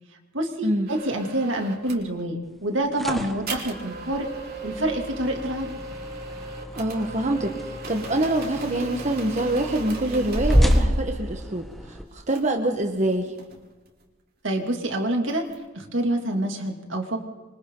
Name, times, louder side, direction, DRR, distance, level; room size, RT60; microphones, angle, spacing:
voice 1, 0.3-4.3 4.6-5.7 14.4-15.4 15.7-17.2, right 1 dB, 75° right, 3 dB, 2.8 m, -27 dB
sound 1, 0.9-2.1 3.5-10.9 12.3-12.5 12.8-14.0 15.3-15.6, right 3 dB, 55° right, 3.9 m, -38 dB
sound 2, 2.7-12.0, equal, ahead, 1.4 m, -28 dB
voice 2, 6.7-13.3, right 1 dB, 40° right, 3 dB, 1.5 m, -25 dB
27.0 x 24.5 x 4.0 m, 1.2 s
head